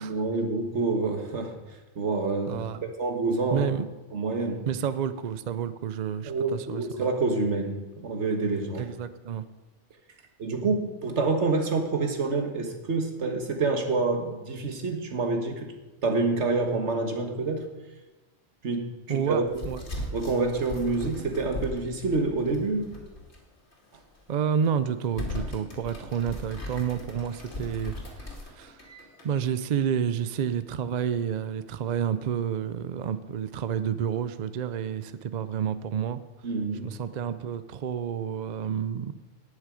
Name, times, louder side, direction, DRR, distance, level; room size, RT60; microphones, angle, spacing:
voice 1, 0.0-1.6 2.0-2.6 3.0-3.7 4.1-4.7 6.2-8.9 10.4-15.7 16.0-17.7 18.6-19.6 20.1-22.9 36.4-36.9, right 3 dB, 75° right, 5 dB, 1.6 m, -27 dB
voice 2, 2.5-2.8 3.5-3.8 4.7-7.1 8.8-9.4 19.1-19.8 24.3-28.8 29.2-36.2 36.8-39.1, right 8 dB, 50° right, 13 dB, 0.5 m, -30 dB
sound 1, 19.5-23.4 23.7-23.8 24.4-24.6 25.0-29.4, left 1 dB, 70° left, 2.5 m, -38 dB
18.5 x 6.5 x 5.0 m, 1.1 s
omnidirectional pair, 1.2 m